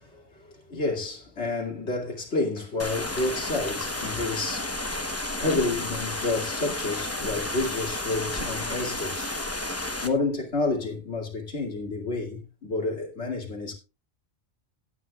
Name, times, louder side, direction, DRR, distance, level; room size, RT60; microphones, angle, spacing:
voice 1, 0.0-4.7 5.1-9.3 10.0-13.7, left 3 dB, 85° left, 2.8 m, -30 dB
sound 1, 2.8-10.1, left 1 dB, 15° left, 0.9 m, -32 dB
17.0 x 9.1 x 2.4 m
omnidirectional pair, 1.1 m